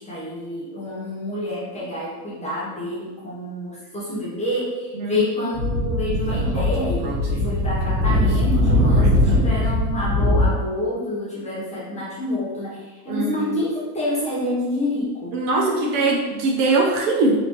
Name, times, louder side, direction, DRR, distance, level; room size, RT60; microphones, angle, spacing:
voice 1, 0.0-15.4, left 1 dB, 15° left, -8 dB, 0.6 m, -28 dB
Speech / Wind, 5.5-10.5, left 1 dB, 75° right, 1.1 m, -20 dB
voice 2, 13.1-13.4 15.3-17.4, right 3 dB, 45° right, -1 dB, 0.6 m, -21 dB
3.4 x 2.7 x 2.8 m, 1.2 s
supercardioid pair, 135°, 48 cm